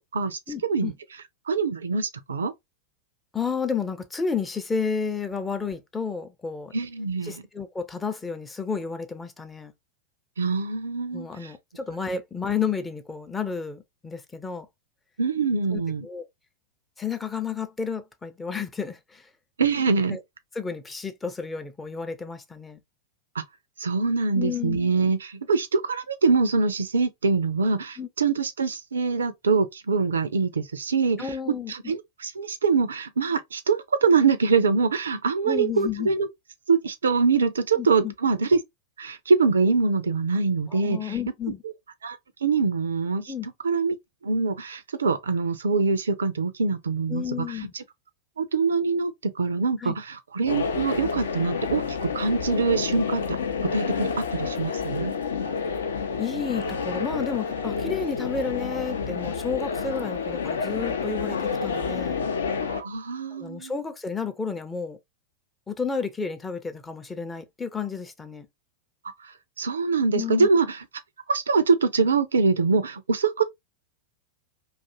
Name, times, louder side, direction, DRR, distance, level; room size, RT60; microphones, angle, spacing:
voice 1, 0.5-0.9 3.3-6.7 7.2-9.7 11.1-14.7 15.7-16.3 17.0-19.3 20.1-20.2 20.5-22.8 24.3-24.8 28.0-28.1 31.2-31.7 35.5-36.1 37.7-38.1 40.7-41.6 43.3-43.5 47.1-47.7 49.8-49.9 56.2-62.2 63.3-65.0 65.7-68.5 70.1-70.5, left 6 dB, 15° left, 0.4 m, -31 dB
voice 2, 1.5-2.5 6.7-7.4 10.4-11.5 15.2-16.1 19.6-20.2 23.4-23.5 23.8-31.3 31.7-36.3 36.7-38.6 39.0-41.2 42.0-43.3 43.6-44.0 44.2-47.8 48.4-53.4 53.6-55.1 62.7-63.7 69.0-70.8 71.3-73.4, right 4 dB, 70° right, 0.4 m, -24 dB
sound 1, 50.5-62.8, left 5 dB, 70° left, 0.4 m, -29 dB
2.5 x 2.4 x 2.6 m
figure-of-eight pair, 90°, 0 cm